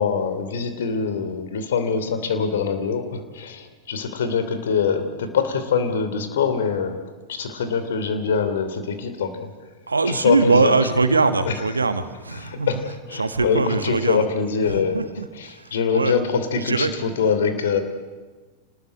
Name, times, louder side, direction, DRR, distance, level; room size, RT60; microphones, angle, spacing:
voice 1, 0.0-7.0 7.3-9.5 10.0-10.7 11.4-11.5 12.3-15.1 15.3-17.8, left 6 dB, 60° left, 9 dB, 2.9 m, -24 dB
voice 2, 9.9-14.2 14.6-16.1 16.5-16.9, right 3 dB, 80° right, 10 dB, 1.5 m, -22 dB
27.0 x 19.5 x 7.9 m, 1.3 s
figure-of-eight pair, 90°, 0 cm